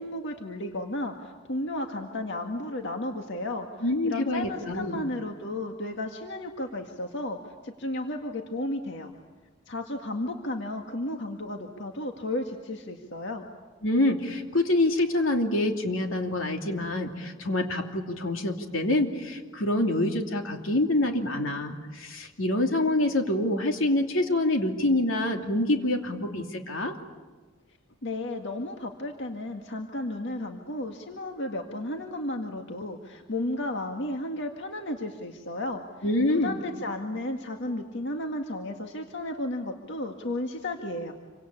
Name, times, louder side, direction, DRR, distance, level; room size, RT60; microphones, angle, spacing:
voice 1, 0.0-9.1 9.7-13.5 28.0-35.8 36.4-41.1, left 1 dB, 65° left, 3 dB, 1.9 m, -33 dB
voice 2, 3.8-5.0 13.8-26.9 36.0-36.6, left 1 dB, 85° left, 4 dB, 2.9 m, -26 dB
28.0 x 25.0 x 8.7 m, 1.3 s
head